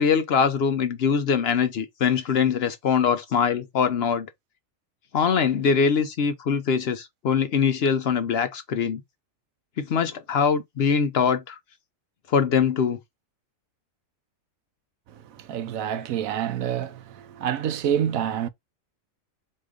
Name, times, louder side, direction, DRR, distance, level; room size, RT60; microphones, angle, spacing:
voice 1, 0.0-4.3 5.1-9.0 9.8-11.6 12.3-13.0, left 6 dB, 60° left, 0.7 m, -23 dB
voice 2, 15.1-18.5, right 9 dB, 90° right, 1.0 m, -28 dB
4.3 x 2.5 x 4.8 m
omnidirectional pair, 1.4 m